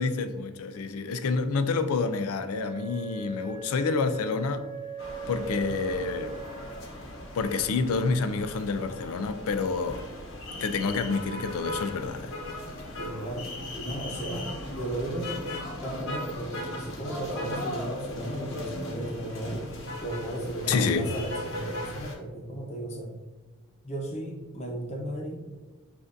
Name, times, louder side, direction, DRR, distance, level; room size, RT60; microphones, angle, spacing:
voice 1, 0.0-4.6 5.3-6.4 7.3-10.0 10.6-12.3 20.7-21.1, left 4 dB, 80° left, 0.4 m, -28 dB
Wind instrument woodwind instrument, 2.5-7.1, right 4 dB, 40° right, 0.6 m, -40 dB
sound 1, 5.0-22.1, left 1 dB, 60° left, 0.9 m, -38 dB
voice 2, 13.0-15.3 15.8-19.7 20.0-23.1 23.8-25.6, right 1 dB, 30° left, 0.8 m, -35 dB
7.2 x 2.5 x 2.5 m
head